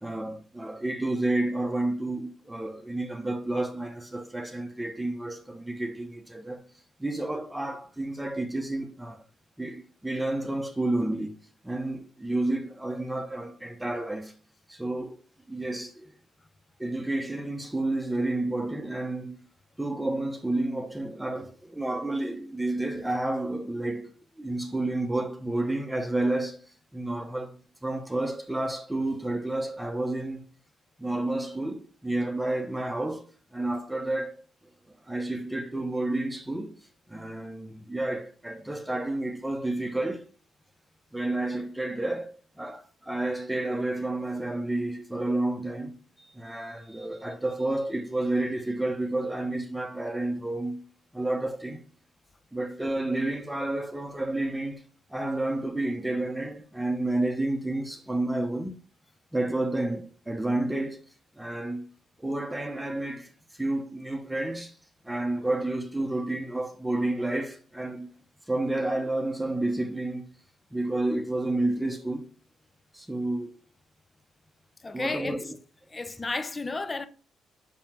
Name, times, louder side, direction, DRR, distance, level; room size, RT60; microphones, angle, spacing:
voice 1, 0.0-6.6 7.0-9.2 9.6-11.4 11.6-14.3 14.7-15.2 15.5-16.1 16.8-19.4 19.8-24.1 24.4-30.4 31.0-34.4 35.1-36.8 37.1-40.3 41.1-42.3 42.6-46.0 46.3-50.8 51.1-51.8 52.5-54.8 55.1-58.7 59.3-61.0 61.4-61.9 62.2-64.7 65.0-68.1 68.5-70.2 70.7-72.3 72.9-73.5 74.9-75.6, right 2 dB, 10° right, 0.9 m, -30 dB
voice 2, 74.8-75.5 75.9-77.1, left 3 dB, 25° left, 0.7 m, -33 dB
5.6 x 5.2 x 4.4 m
cardioid pair, 90°, 0 cm